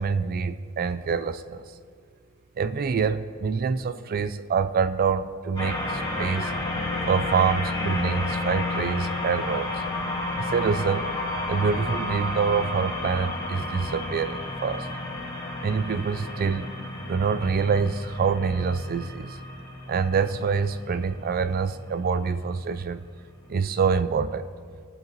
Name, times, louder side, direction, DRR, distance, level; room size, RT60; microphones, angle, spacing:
voice 1, 0.0-1.6 2.6-6.5 7.1-9.7 10.5-11.0 11.5-14.9 15.6-16.7 17.1-19.4 19.9-23.0 23.5-24.5, right 5 dB, 45° right, 11 dB, 0.4 m, -26 dB
sound 1, 5.5-22.1, left 2 dB, 20° left, 1.6 m, -31 dB
19.5 x 7.7 x 3.1 m, 2.2 s
head